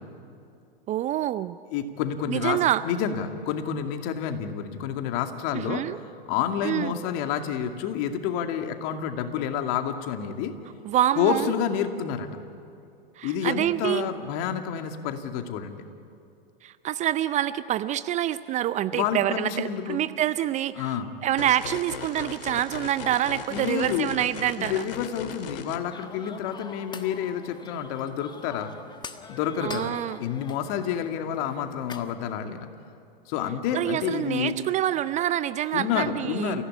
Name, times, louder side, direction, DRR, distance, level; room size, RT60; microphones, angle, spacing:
voice 1, 0.9-1.6 2.3-2.8 5.5-6.0 6.6-6.9 10.8-11.5 13.2-14.1 16.6-24.9 29.6-30.2 33.7-36.6, right 12 dB, 25° right, 15 dB, 0.5 m, -26 dB
voice 2, 1.7-2.6 2.8-5.9 6.3-10.5 11.2-12.3 13.2-15.8 18.9-20.0 20.8-21.1 23.5-24.1 24.6-28.7 29.3-32.7 33.3-34.5 35.7-36.6, left 8 dB, 45° left, 6 dB, 2.4 m, -29 dB
sound 1, 21.4-25.8, left 7 dB, 65° left, 2.4 m, -38 dB
sound 2, 25.9-32.2, left 5 dB, 15° left, 1.3 m, -44 dB
29.5 x 16.5 x 9.9 m, 2.6 s
hypercardioid pair, 100°, 30 cm